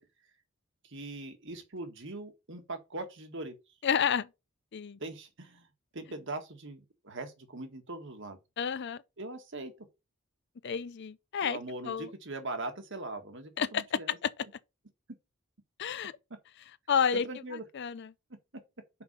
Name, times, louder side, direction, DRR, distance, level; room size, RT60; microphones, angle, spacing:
voice 1, 0.8-3.6 5.0-5.7 5.9-8.4 9.2-9.9 11.4-14.2 17.2-17.6, right 2 dB, 55° right, 1.7 m, -41 dB
voice 2, 3.8-4.3 4.7-5.0 8.6-9.0 10.6-11.6 11.8-12.1 13.6-14.3 15.8-16.1 16.9-17.3 17.7-18.1, left 7 dB, 50° left, 0.5 m, -30 dB
5.9 x 5.3 x 6.7 m
head